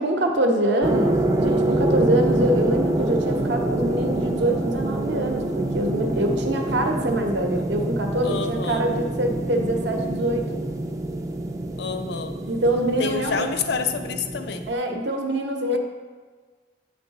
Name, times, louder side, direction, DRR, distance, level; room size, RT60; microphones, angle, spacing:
voice 1, 0.0-10.5 12.5-13.5 14.7-15.8, right 1 dB, 70° right, 3 dB, 0.7 m, -24 dB
sound 1, 0.8-14.7, right 1 dB, 20° right, 0.4 m, -26 dB
Guitar, 6.0-9.9, left 4 dB, 85° left, 0.8 m, -44 dB
voice 2, 8.2-8.9 11.8-12.4 13.0-14.7, left 5 dB, 65° left, 7 dB, 0.5 m, -28 dB
9.2 x 3.3 x 3.9 m, 1.4 s
head